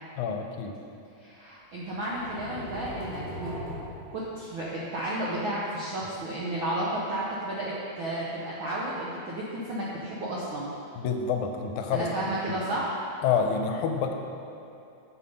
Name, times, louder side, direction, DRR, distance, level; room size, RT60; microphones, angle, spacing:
voice 1, 0.2-0.7 11.0-12.3 13.2-14.2, left 6 dB, 90° left, 4 dB, 2.0 m, -28 dB
voice 2, 1.2-3.5 4.1-10.7 11.9-12.9, right 1 dB, 75° right, -6 dB, 1.1 m, -32 dB
sound 1, 1.9-4.8, equal, 40° right, 2.2 m, -39 dB
7.1 x 5.8 x 5.3 m, 2.7 s
omnidirectional pair, 3.4 m